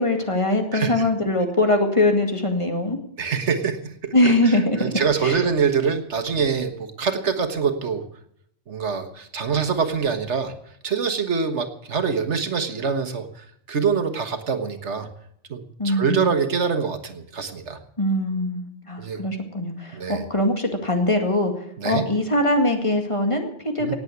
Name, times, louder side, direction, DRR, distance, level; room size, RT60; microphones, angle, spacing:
voice 1, 0.0-3.0 4.1-5.4 15.8-16.3 18.0-21.5 21.8-23.9, left 1 dB, 30° left, 4 dB, 2.2 m, -22 dB
voice 2, 0.7-1.1 3.2-8.0 8.7-10.5 10.8-15.1 15.5-17.8 19.0-19.2 19.9-20.2 21.8-22.0 23.8-23.9, right 6 dB, 90° right, 8 dB, 1.7 m, -25 dB
18.0 x 8.0 x 8.2 m, 0.69 s
omnidirectional pair, 1.1 m